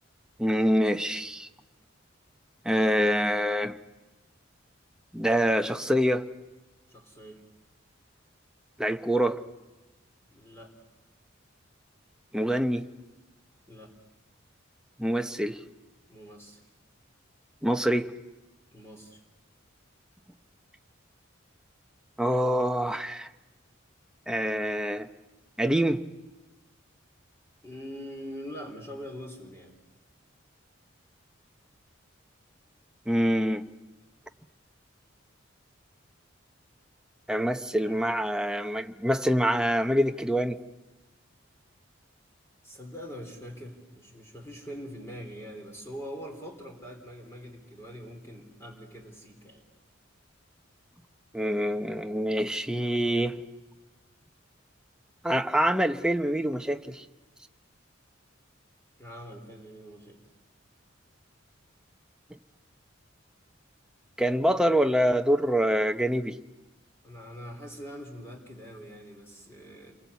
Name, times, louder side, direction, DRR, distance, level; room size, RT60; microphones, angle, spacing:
voice 1, 0.4-1.5 2.6-3.8 5.1-6.2 8.8-9.4 12.3-12.9 15.0-15.6 17.6-18.1 22.2-23.3 24.3-25.1 25.6-26.0 33.1-33.6 37.3-40.6 51.3-53.4 55.2-57.0 64.2-66.4, equal, 5° right, 0.8 m, -25 dB
voice 2, 6.9-7.4 10.3-10.7 13.7-13.9 16.1-16.6 18.7-19.2 27.6-29.8 37.8-38.0 42.6-49.6 59.0-60.2 67.0-69.9, equal, 15° left, 3.6 m, -43 dB
29.5 x 22.5 x 8.2 m
head